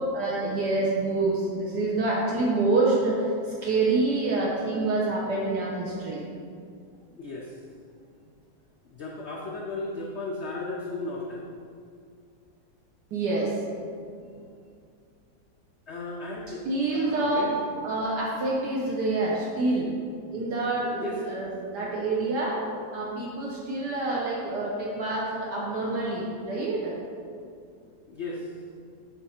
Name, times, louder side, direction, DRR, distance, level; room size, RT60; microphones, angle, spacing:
voice 1, 0.1-6.2 13.1-13.5 16.6-17.5 17.8-19.9 20.3-22.6 22.9-26.9, right 2 dB, 70° right, -4 dB, 1.3 m, -27 dB
voice 2, 7.2-7.5 8.9-11.4 15.9-16.7 16.9-17.6 21.0-21.2 28.1-28.5, left 2 dB, 75° left, -2 dB, 0.6 m, -35 dB
8.1 x 3.7 x 4.2 m, 2.3 s
omnidirectional pair, 1.9 m